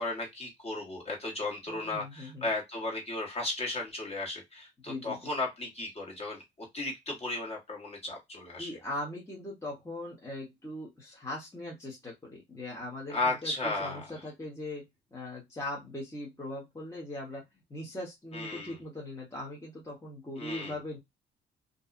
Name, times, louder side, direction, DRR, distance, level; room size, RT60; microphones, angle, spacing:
voice 1, 0.0-8.7 13.1-14.0 18.3-18.8 20.4-20.7, left 2 dB, 30° left, -1 dB, 1.5 m, -35 dB
voice 2, 1.7-2.5 4.9-5.2 8.6-21.0, left 1 dB, 15° left, -4 dB, 1.1 m, -40 dB
2.7 x 2.3 x 2.4 m, 0.18 s
cardioid pair, 90°, 20 cm